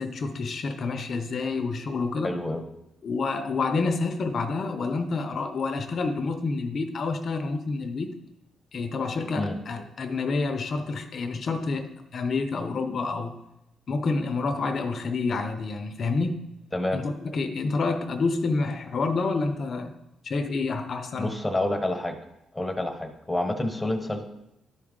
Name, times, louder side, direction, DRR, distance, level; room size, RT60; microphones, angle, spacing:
voice 1, 0.0-2.4 3.0-8.1 8.7-13.4 13.9-16.3 16.9-19.9 20.2-21.3, left 3 dB, 50° left, 8 dB, 0.6 m, -28 dB
voice 2, 2.2-2.6 9.4-9.6 16.7-17.0 21.2-22.1 22.5-24.2, left 1 dB, 10° left, 6 dB, 1.0 m, -28 dB
11.0 x 4.8 x 3.7 m, 0.88 s
cardioid pair, 90°, 0 cm